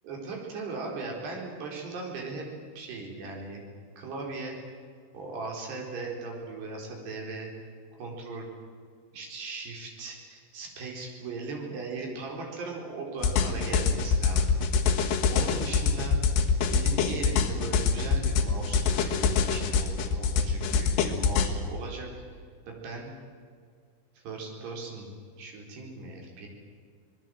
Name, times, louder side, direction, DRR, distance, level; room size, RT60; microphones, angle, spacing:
voice 1, 0.0-2.5 2.8-3.6 4.0-4.6 5.1-7.5 8.0-8.5 9.1-14.6 15.0-16.2 16.7-22.2 22.7-23.1 24.2-25.1 25.4-26.5, right 3 dB, 75° right, 0 dB, 6.3 m, -38 dB
sound 1, 13.2-21.5, left 5 dB, 85° left, 3.8 m, -25 dB
24.5 x 20.5 x 7.7 m, 2.1 s
omnidirectional pair, 4.9 m